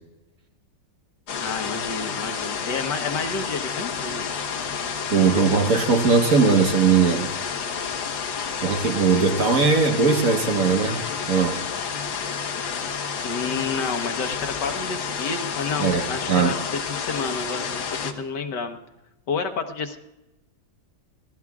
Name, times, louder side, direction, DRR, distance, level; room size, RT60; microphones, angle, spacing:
sound 1, 1.3-18.1, left 6 dB, 85° left, 2.1 m, -30 dB
voice 1, 1.4-4.3 13.2-18.8 19.3-20.0, left 4 dB, 65° left, 6 dB, 1.8 m, -30 dB
voice 2, 5.1-7.3 8.6-11.0 11.3-11.7 15.8-16.6, right 5 dB, 50° right, 4 dB, 1.5 m, -19 dB
28.0 x 17.0 x 2.4 m, 0.96 s
omnidirectional pair, 2.1 m